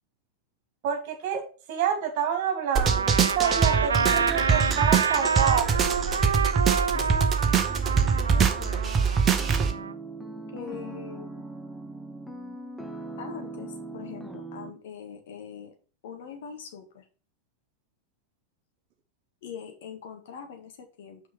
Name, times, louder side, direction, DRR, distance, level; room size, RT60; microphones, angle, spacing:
voice 1, 0.8-1.4 1.7-5.8, right 8 dB, 45° right, 4 dB, 2.5 m, -28 dB
sound 1, 2.8-9.7, right 6 dB, 25° right, 1.0 m, -24 dB
Trumpet, 2.8-9.9, right 6 dB, 70° right, 0.3 m, -28 dB
voice 2, 6.9-7.8 8.1-9.4 10.5-11.4 13.2-15.8 16.0-17.1 19.4-21.2, left 7 dB, 55° left, 4 dB, 1.8 m, -42 dB
sound 2, 9.4-14.7, right 2 dB, ahead, 1.1 m, -40 dB
6.2 x 5.1 x 6.4 m, 0.37 s
figure-of-eight pair, 90°, 0 cm